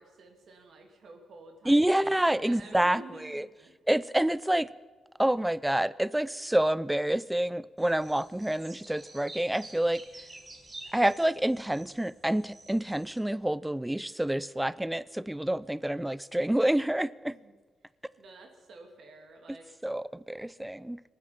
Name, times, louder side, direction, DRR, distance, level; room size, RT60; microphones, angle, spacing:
voice 1, 0.0-3.7 17.3-17.5 18.2-19.7, right 3 dB, 65° right, 2.6 m, -50 dB
voice 2, 1.7-3.5 3.9-4.7 5.2-10.2 10.9-17.4 19.8-21.0, right 1 dB, 5° right, 0.4 m, -28 dB
sound 1, 7.8-13.2, right 2 dB, 30° right, 2.0 m, -50 dB
26.0 x 9.5 x 5.8 m
cardioid pair, 120°, 0 cm